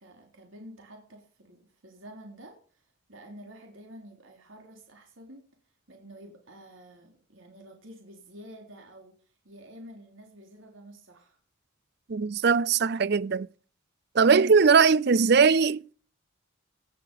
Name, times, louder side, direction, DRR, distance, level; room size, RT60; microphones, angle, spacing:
voice 1, 0.0-5.5 5.9-11.4, equal, 75° right, 3.4 m, -49 dB
voice 2, 12.1-13.5 14.1-15.9, right 5 dB, 55° right, 0.5 m, -20 dB
17.5 x 6.8 x 6.8 m
head